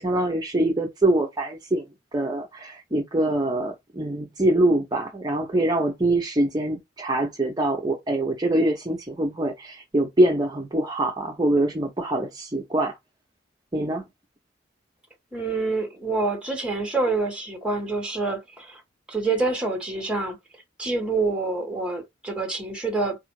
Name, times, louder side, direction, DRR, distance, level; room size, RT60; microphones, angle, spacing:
voice 1, 0.0-1.9 2.1-12.9 13.7-14.0, right 1 dB, 20° right, 0.5 m, -24 dB
voice 2, 15.3-18.8 19.1-20.4 20.8-23.2, right 3 dB, 5° right, 1.0 m, -27 dB
4.2 x 2.5 x 3.0 m
head